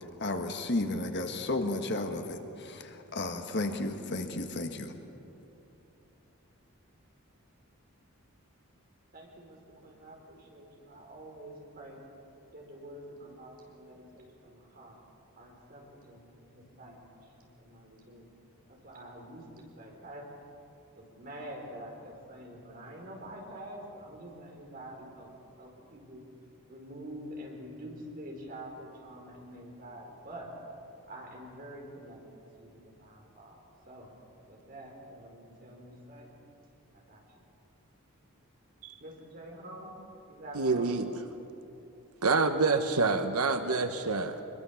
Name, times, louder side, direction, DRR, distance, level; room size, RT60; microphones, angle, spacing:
voice 1, 0.2-4.9, left 2 dB, 50° left, 6 dB, 1.5 m, -33 dB
voice 2, 9.1-12.0 12.5-14.9 15.4-17.0 17.6-18.3 18.8-20.3 21.0-25.3 25.6-26.2 26.7-30.5 31.1-32.2 32.6-32.7 33.0-33.6 33.9-34.1 34.5-36.3 37.1-37.2 39.0-39.9 40.3-40.9, right 1 dB, 40° right, 0 dB, 4.5 m, -46 dB
voice 3, 40.5-41.2 42.2-44.4, right 3 dB, 85° right, 8 dB, 1.1 m, -27 dB
23.0 x 22.0 x 7.2 m, 2.9 s
head